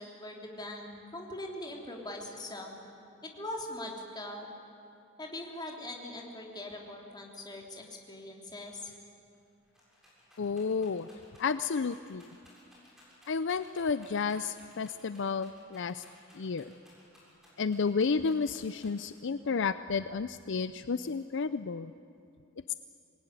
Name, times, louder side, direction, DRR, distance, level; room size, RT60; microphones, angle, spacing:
voice 1, 0.0-2.8 3.2-4.5 5.2-8.9, left 1 dB, 20° left, 1 dB, 3.3 m, -41 dB
Rattle, 9.0-9.1 9.3-19.3 19.9-20.5, equal, ahead, 7.1 m, -60 dB
voice 2, 10.4-11.1 11.4-12.3 13.3-16.0 16.3-16.7 17.6-21.9, left 5 dB, 60° left, 13 dB, 0.5 m, -31 dB
25.5 x 19.5 x 9.9 m, 2.5 s
head